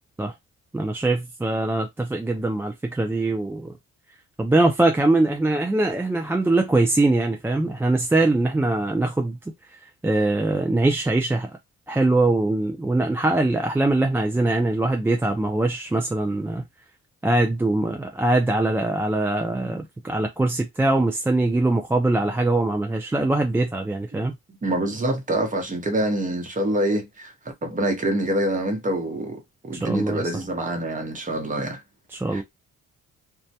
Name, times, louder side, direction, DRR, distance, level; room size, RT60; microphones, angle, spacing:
voice 1, 0.7-3.7 4.4-9.4 10.0-11.5 11.9-16.6 17.2-24.4 29.8-30.2 32.1-32.4, right 2 dB, 10° right, 0.3 m, -22 dB
voice 2, 24.5-27.3 27.6-31.8 32.3-32.4, right 1 dB, 25° right, 0.8 m, -26 dB
2.2 x 2.1 x 2.7 m
cardioid pair, 90°, 30 cm